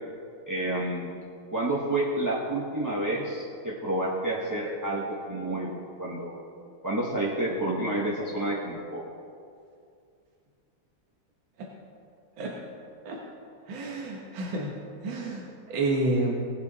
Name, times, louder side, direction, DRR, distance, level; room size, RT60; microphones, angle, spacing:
voice 1, 0.5-1.2 1.5-6.4 6.8-9.0, right 1 dB, 15° right, -5 dB, 0.7 m, -29 dB
voice 2, 13.7-16.3, right 2 dB, 75° right, -2 dB, 2.0 m, -30 dB
19.0 x 8.2 x 4.0 m, 2.4 s
omnidirectional pair, 2.2 m